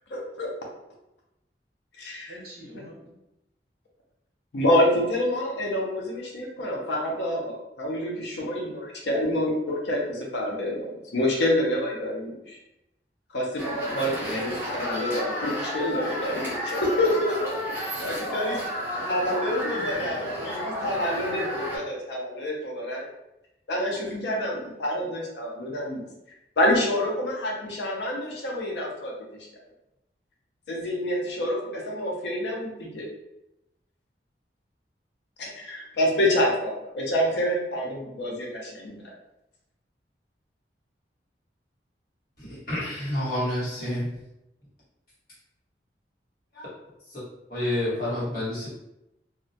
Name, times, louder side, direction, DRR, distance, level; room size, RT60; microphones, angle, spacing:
voice 1, 0.1-0.5 2.0-2.3 4.5-12.6 13.3-18.6 19.1-23.1 23.7-26.0 26.6-29.5 30.7-33.1 35.4-39.0, left 1 dB, 80° left, -1 dB, 0.5 m, -27 dB
voice 2, 2.3-3.2 18.5-20.5 20.9-21.3, equal, 55° right, -3 dB, 0.7 m, -42 dB
sound 1, 13.6-21.8, equal, 10° right, 0.8 m, -32 dB
voice 3, 42.4-44.1 46.5-46.7 47.1-47.2 47.5-48.7, left 1 dB, 55° left, -9 dB, 1.3 m, -29 dB
2.4 x 2.1 x 2.6 m, 0.89 s
head